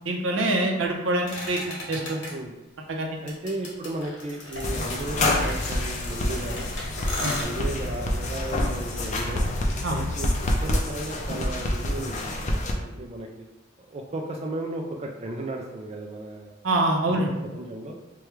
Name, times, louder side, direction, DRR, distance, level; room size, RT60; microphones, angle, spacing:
voice 1, 0.1-2.2 2.9-3.2 7.2-7.3 9.8-10.0 16.6-17.3, right 2 dB, 85° right, 1 dB, 0.7 m, -25 dB
sound 1, 1.3-2.3 3.3-7.4, left 2 dB, 65° left, 1.0 m, -36 dB
voice 2, 3.2-6.7 7.1-9.5 9.9-13.5 13.9-16.6 17.1-17.2 17.5-18.0, right 1 dB, 35° right, 1 dB, 0.3 m, -35 dB
sound 2, 4.5-10.7, left 1 dB, 85° left, 0.6 m, -35 dB
sound 3, 4.6-12.7, left 1 dB, 40° left, 0.5 m, -28 dB
4.7 x 2.3 x 3.0 m, 1.1 s
head